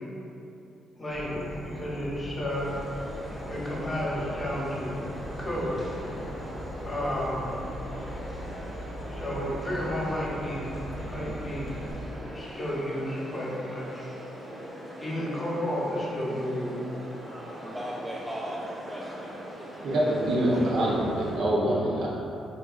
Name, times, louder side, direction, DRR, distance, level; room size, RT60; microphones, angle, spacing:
voice 1, 1.0-2.7 3.5-5.0 5.4-5.8 6.8-7.4 9.1-10.7 11.1-11.8 12.3-14.0 15.0-16.8, equal, 20° left, -6 dB, 0.8 m, -32 dB
Insect / Frog, 1.1-11.9, equal, 55° left, 0.6 m, -40 dB
sound 1, 2.5-21.4, equal, 20° right, 0.7 m, -41 dB
voice 2, 17.6-20.0 20.4-20.8 21.9-22.1, equal, ahead, -5 dB, 0.3 m, -39 dB
voice 3, 19.8-22.1, right 1 dB, 75° right, -6 dB, 0.7 m, -25 dB
3.7 x 2.7 x 2.4 m, 2.8 s
cardioid pair, 90°, 0 cm